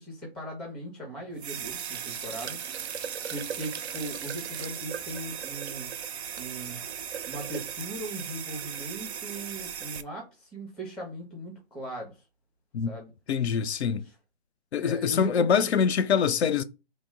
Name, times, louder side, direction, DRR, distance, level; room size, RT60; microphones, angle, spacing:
voice 1, 0.0-2.6 3.3-6.0 6.4-6.8 7.3-12.2 12.9-13.1 14.0-14.1 14.8-15.9, right 1 dB, 5° left, 0.4 m, -39 dB
sound 1, 1.4-10.0, right 8 dB, 75° right, 0.5 m, -37 dB
voice 2, 13.3-14.1 14.7-16.6, left 7 dB, 75° left, 0.5 m, -24 dB
3.0 x 2.0 x 3.6 m
hypercardioid pair, 165°, 33 cm